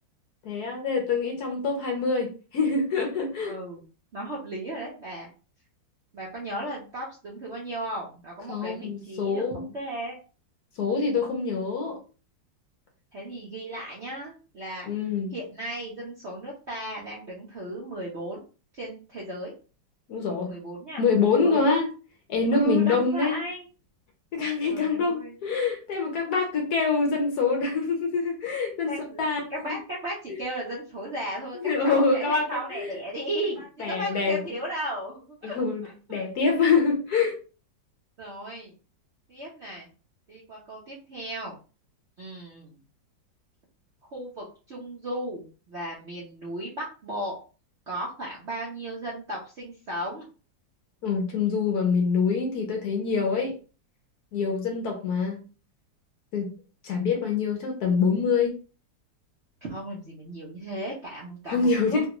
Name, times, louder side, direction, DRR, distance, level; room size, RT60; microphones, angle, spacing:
voice 1, 0.4-3.5 8.5-9.6 10.8-12.0 14.9-15.3 20.1-20.5 21.0-21.9 22.3-23.4 24.3-29.4 31.6-32.9 33.8-34.4 35.4-37.3 51.0-53.6 54.3-55.4 56.3-56.5 56.8-58.6 61.5-62.1, left 4 dB, 65° left, 2 dB, 1.1 m, -25 dB
voice 2, 3.5-3.8 4.1-5.3 6.1-10.2 13.1-14.9 15.3-18.4 18.7-19.5 20.5-21.0 21.4-21.7 22.5-23.6 24.6-25.4 26.3-26.6 28.9-29.2 29.5-36.2 38.2-38.7 39.3-39.9 40.3-41.6 42.2-42.8 44.1-47.4 47.9-50.2 59.6-62.1, right 1 dB, 55° right, -5 dB, 0.8 m, -35 dB
3.4 x 2.3 x 2.9 m, 0.35 s
omnidirectional pair, 2.0 m